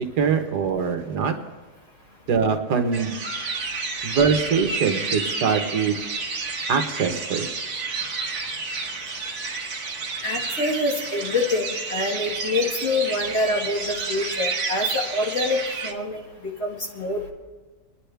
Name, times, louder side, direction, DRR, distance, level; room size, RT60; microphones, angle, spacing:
voice 1, 0.2-1.3 2.3-3.2 4.0-6.0 6.7-7.5 13.2-13.4, right 6 dB, 75° right, 5 dB, 1.7 m, -23 dB
sound 1, 2.9-15.9, right 4 dB, 50° right, 1.6 m, -30 dB
voice 2, 10.2-17.3, left 2 dB, 40° left, -1 dB, 2.2 m, -26 dB
30.0 x 10.5 x 3.4 m, 1.3 s
omnidirectional pair, 1.7 m